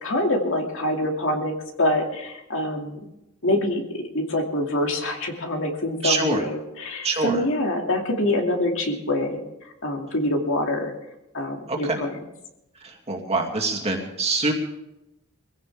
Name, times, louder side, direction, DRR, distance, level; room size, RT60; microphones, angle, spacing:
voice 1, 0.0-3.0 3.4-9.4 9.8-10.9 11.3-12.1, left 1 dB, 65° left, 2 dB, 2.5 m, -25 dB
voice 2, 6.0-6.5 7.0-7.4 11.7-12.0 12.8-14.5, right 3 dB, 30° right, 1 dB, 2.6 m, -25 dB
22.5 x 16.0 x 3.6 m, 0.89 s
head